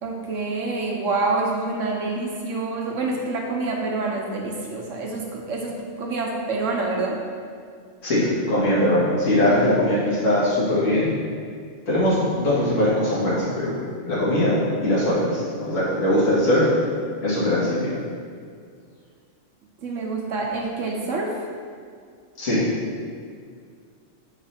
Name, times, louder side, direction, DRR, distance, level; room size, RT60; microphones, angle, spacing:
voice 1, 0.0-7.2 19.8-21.4, right 3 dB, 75° right, 0 dB, 1.4 m, -27 dB
voice 2, 8.0-11.1 11.9-13.7 14.1-16.7 17.2-17.9 22.4-22.6, left 1 dB, 75° left, -9 dB, 2.3 m, -21 dB
8.6 x 3.3 x 5.8 m, 2.1 s
omnidirectional pair, 1.3 m